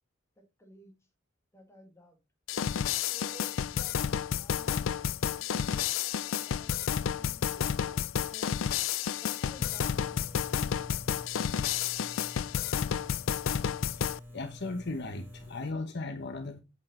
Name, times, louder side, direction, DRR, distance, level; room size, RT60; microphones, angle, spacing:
voice 1, 0.4-1.0 1.5-2.2 3.1-4.0 4.4-4.9 5.2-8.6 9.2-10.4, equal, 15° left, 2.6 m, -54 dB
sound 1, 2.5-14.2, left 8 dB, 75° left, 0.4 m, -31 dB
sound 2, 9.5-15.7, left 1 dB, 10° right, 2.2 m, -48 dB
voice 2, 13.9-16.6, left 2 dB, 60° left, 1.1 m, -37 dB
8.4 x 7.3 x 4.3 m
head